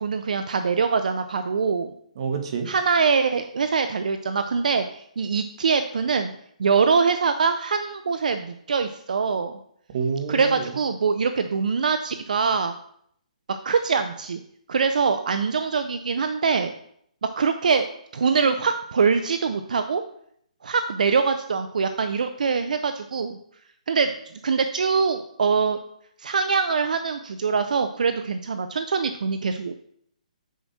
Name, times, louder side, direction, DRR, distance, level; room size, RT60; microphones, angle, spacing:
voice 1, 0.0-1.9 2.7-6.3 6.6-9.6 10.3-12.7 13.5-14.4 14.7-16.7 17.2-17.9 18.1-20.0 20.6-23.4 23.9-24.1 24.4-25.8 26.2-29.7, right 5 dB, 75° right, 9 dB, 0.7 m, -23 dB
voice 2, 2.1-2.7 9.9-10.7, right 5 dB, 45° right, 5 dB, 1.7 m, -28 dB
9.4 x 5.9 x 4.4 m, 0.69 s
hypercardioid pair, 160°, 4 cm